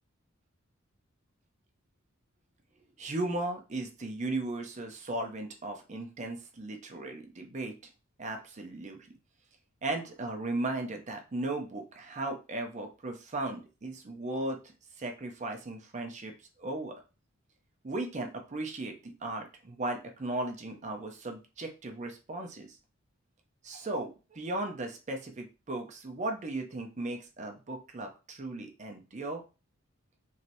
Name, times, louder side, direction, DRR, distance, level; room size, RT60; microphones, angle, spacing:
voice 1, 3.0-7.7 8.2-9.0 9.8-14.6 15.0-16.3 16.6-16.9 17.8-22.8 23.6-29.4, right 2 dB, 35° right, 4 dB, 0.6 m, -36 dB
3.1 x 2.7 x 2.6 m, 0.31 s
head